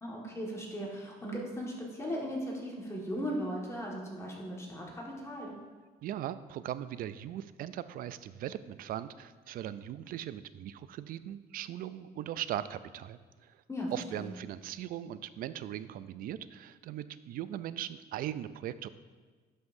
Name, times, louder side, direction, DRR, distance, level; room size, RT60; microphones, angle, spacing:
voice 1, 0.0-5.5 13.7-14.3, equal, 15° left, -3 dB, 1.6 m, -37 dB
voice 2, 6.0-13.6 13.9-18.9, right 11 dB, 60° right, 14 dB, 0.4 m, -39 dB
11.5 x 5.6 x 2.6 m, 1.5 s
cardioid pair, 110°, 17 cm